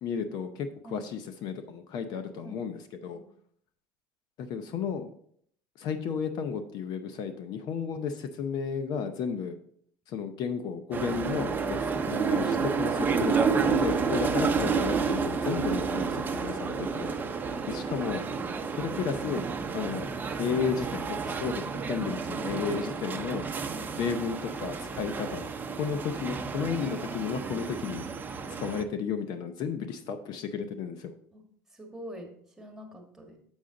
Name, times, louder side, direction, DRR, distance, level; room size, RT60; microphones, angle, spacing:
voice 1, 0.0-3.2 4.4-5.1 5.8-9.6 10.1-17.1 17.7-18.2 18.8-19.4 19.7-20.1 20.4-21.6 21.9-23.5 24.0-25.5 25.8-28.1 28.6-31.1, left 6 dB, 55° left, 9 dB, 0.7 m, -33 dB
voice 2, 2.1-2.6 3.1-3.3 17.6-18.1 18.5-18.7 23.7-24.1 26.1-26.9 31.3-31.4 31.7-33.4, equal, 5° right, 2 dB, 1.7 m, -46 dB
sound 1, 10.9-28.8, right 5 dB, 20° right, 0.7 m, -30 dB
7.2 x 6.2 x 3.8 m, 0.64 s
supercardioid pair, 115°, 8 cm